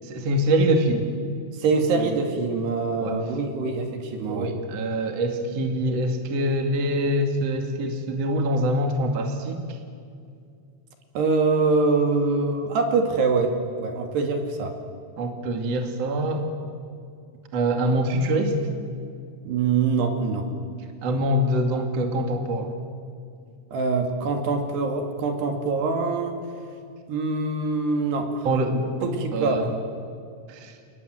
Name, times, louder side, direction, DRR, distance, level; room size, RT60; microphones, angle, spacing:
voice 1, 0.0-1.1 2.0-2.1 3.0-3.2 4.3-9.6 15.2-16.5 17.5-18.6 21.0-22.8 28.4-29.7 30.5-30.7, right 1 dB, 45° right, 4 dB, 2.5 m, -24 dB
voice 2, 1.6-4.5 11.2-14.8 19.4-20.5 23.7-26.4 27.1-28.5 29.0-29.6, right 4 dB, 60° right, 5 dB, 4.2 m, -24 dB
29.5 x 20.0 x 9.4 m, 2.3 s
omnidirectional pair, 5.7 m